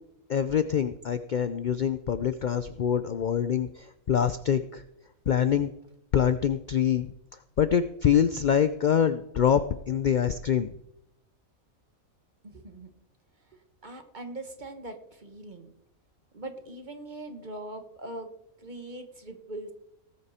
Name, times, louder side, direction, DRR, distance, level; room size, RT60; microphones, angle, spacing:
voice 1, 0.3-4.8 5.3-5.7 6.1-7.1 7.6-10.7, left 8 dB, 70° left, 12 dB, 0.4 m, -25 dB
voice 2, 12.4-12.9 13.4-15.7 16.3-18.3 18.6-19.7, right 2 dB, 35° right, 6 dB, 1.6 m, -41 dB
18.5 x 8.6 x 4.3 m, 0.80 s
omnidirectional pair, 1.5 m